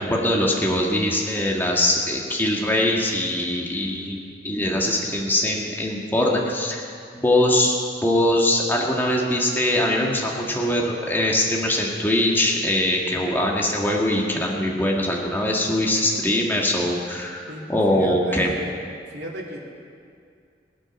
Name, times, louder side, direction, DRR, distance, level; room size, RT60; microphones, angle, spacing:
voice 1, 0.0-4.2 4.4-6.9 7.1-7.8 8.0-18.5, left 1 dB, 10° left, -2 dB, 1.7 m, -22 dB
voice 2, 17.9-18.8 19.1-19.6, right 1 dB, 85° right, -5 dB, 3.1 m, -33 dB
21.5 x 9.1 x 6.3 m, 2.4 s
head